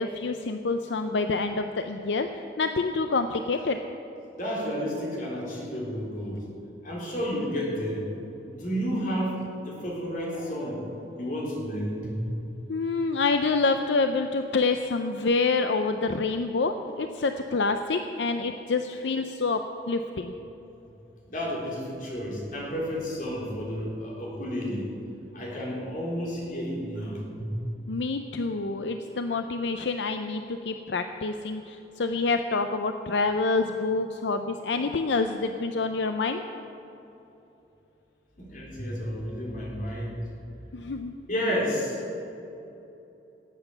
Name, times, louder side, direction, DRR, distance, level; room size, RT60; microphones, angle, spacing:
voice 1, 0.0-2.3 2.6-3.8 12.7-19.6 19.9-20.3 27.9-36.4 40.7-41.1, left 3 dB, 75° left, 7 dB, 0.6 m, -27 dB
voice 2, 4.3-6.4 6.8-8.1 8.4-9.4 9.6-10.8 11.2-12.1 21.3-24.9 25.3-27.5 38.4-40.2 41.3-42.2, equal, 50° left, -4 dB, 3.7 m, -31 dB
18.0 x 8.2 x 6.9 m, 2.9 s
head